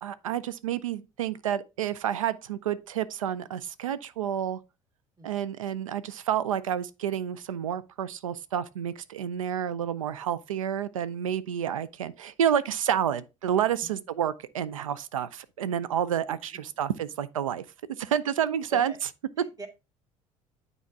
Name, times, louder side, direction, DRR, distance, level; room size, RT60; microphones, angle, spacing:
voice 1, 0.0-4.6 5.2-17.6 18.0-18.9, right 9 dB, 80° right, 0.4 m, -29 dB
voice 2, 19.4-19.7, right 4 dB, 20° right, 1.8 m, -42 dB
9.3 x 4.1 x 3.4 m
figure-of-eight pair, 55°, 17 cm